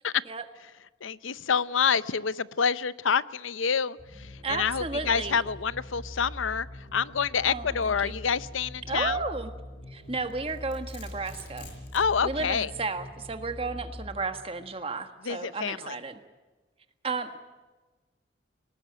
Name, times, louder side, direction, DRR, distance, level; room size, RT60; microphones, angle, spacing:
voice 1, 1.0-6.7 6.9-9.2 11.9-12.7 15.2-16.0, left 6 dB, 90° left, 17 dB, 0.7 m, -27 dB
sound 1, 4.0-14.7, left 1 dB, 30° left, 4.0 m, -43 dB
voice 2, 4.4-5.4 7.4-8.2 8.9-9.5 9.9-11.7 12.2-16.2 17.0-17.4, right 3 dB, 30° right, 8 dB, 1.5 m, -33 dB
Domestic sounds home sounds, 10.2-12.1, left 3 dB, 60° left, 5.6 m, -49 dB
20.0 x 19.5 x 9.1 m, 1.2 s
head